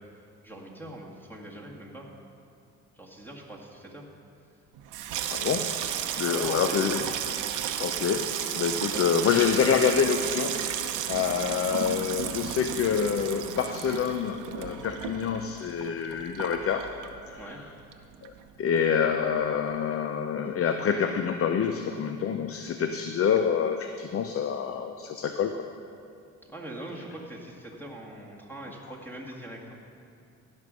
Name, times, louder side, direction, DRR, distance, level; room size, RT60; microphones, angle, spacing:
voice 1, 0.4-2.1 2.9-4.0 6.3-7.1 17.4-17.6 26.5-29.8, right 1 dB, 5° left, -2 dB, 2.0 m, -42 dB
Water tap faucet / Sink (filling or washing), 4.8-17.6 17.9-18.6 18.8-19.2, right 9 dB, 90° right, 0.7 m, -33 dB
voice 2, 5.3-5.8 6.2-7.1 7.8-16.9 17.3-17.6 18.2-18.3 18.6-25.6, left 7 dB, 50° left, 7 dB, 0.6 m, -27 dB
16.0 x 5.4 x 6.3 m, 2.4 s
cardioid pair, 90°, 30 cm